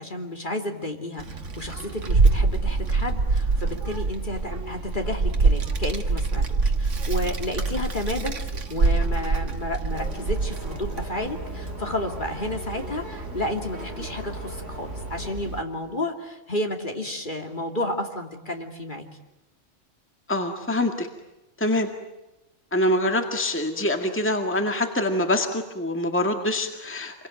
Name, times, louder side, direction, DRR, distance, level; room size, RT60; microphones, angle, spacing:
voice 1, 0.0-8.3 8.7-19.1, left 1 dB, 40° left, 3 dB, 3.0 m, -31 dB
Child speech kid speaking, 1.2-15.6, right 3 dB, 75° right, 2.0 m, -26 dB
sound 1, 9.9-15.3, left 1 dB, 55° left, 4.5 m, -40 dB
voice 2, 20.3-21.1 21.6-21.9 22.7-27.3, left 1 dB, 10° left, 5 dB, 1.9 m, -25 dB
28.0 x 23.0 x 9.2 m, 1.0 s
omnidirectional pair, 1.3 m